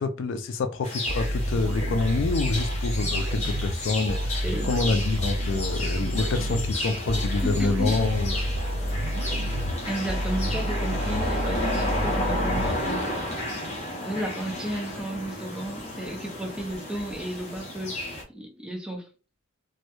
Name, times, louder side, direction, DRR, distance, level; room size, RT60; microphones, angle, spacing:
voice 1, 0.0-8.5, left 3 dB, 65° left, 0.3 m, -27 dB
sound 1, 0.8-18.2, left 1 dB, 35° left, 0.7 m, -33 dB
sound 2, 1.1-13.3, equal, 90° right, 0.4 m, -29 dB
voice 2, 7.4-8.1 9.9-13.4 14.0-19.1, right 1 dB, 5° right, 0.5 m, -33 dB
2.2 x 2.1 x 2.9 m
head